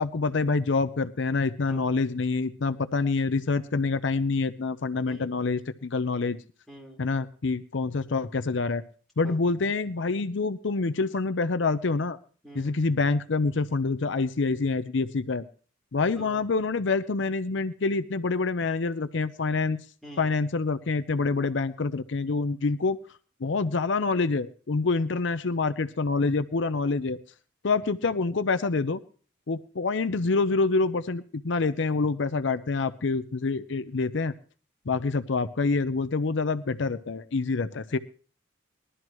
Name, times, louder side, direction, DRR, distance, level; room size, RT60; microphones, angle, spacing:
voice 1, 0.0-6.4 7.0-8.8 9.2-12.2 12.5-15.4 15.9-19.9 20.2-23.0 23.4-27.2 27.6-29.0 29.5-34.3 34.9-38.0, left 3 dB, 65° left, 11 dB, 0.6 m, -26 dB
voice 2, 5.1-5.4 6.7-7.1 9.2-9.4 12.4-12.8 16.2-16.4 20.0-20.4, equal, ahead, -3 dB, 4.2 m, -45 dB
20.5 x 12.5 x 3.1 m, 0.39 s
head